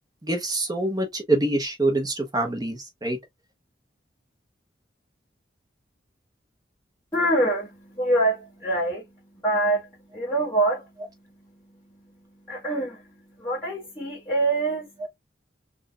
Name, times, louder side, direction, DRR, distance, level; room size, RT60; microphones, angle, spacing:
voice 1, 0.2-3.2 15.0-15.1, right 2 dB, 20° right, 0.9 m, -25 dB
voice 2, 7.1-15.1, right 1 dB, 15° left, 1.4 m, -26 dB
3.8 x 2.5 x 2.3 m
head